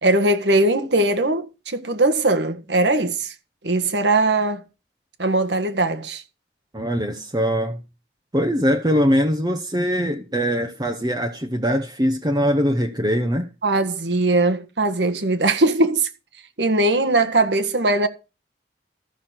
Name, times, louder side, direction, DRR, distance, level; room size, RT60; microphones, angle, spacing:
voice 1, 0.0-3.3 3.6-4.6 5.2-6.2 13.6-16.1 16.6-18.1, right 2 dB, 85° right, 1.7 m, -20 dB
voice 2, 6.7-7.8 8.3-13.5, equal, 25° right, 1.0 m, -22 dB
14.0 x 6.4 x 6.0 m
head